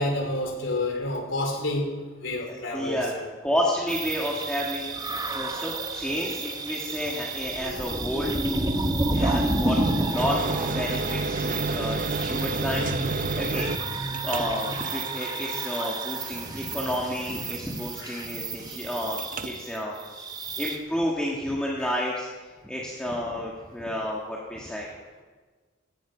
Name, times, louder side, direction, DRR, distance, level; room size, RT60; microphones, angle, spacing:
voice 1, 0.0-1.9 2.2-3.3 18.0-18.2 21.8-22.0, left 1 dB, 70° left, 2 dB, 3.7 m, -29 dB
voice 2, 2.4-3.1 3.4-4.9 5.3-8.3 9.1-12.9 13.3-19.2 19.4-20.2 20.6-22.3 22.6-24.9, equal, 5° left, -4 dB, 1.7 m, -31 dB
sound 1, 3.9-20.8, right 2 dB, 20° right, 1.2 m, -30 dB
sound 2, 10.2-17.8 19.2-19.5, right 3 dB, 40° right, 0.6 m, -32 dB
16.5 x 16.0 x 5.1 m, 1.4 s
head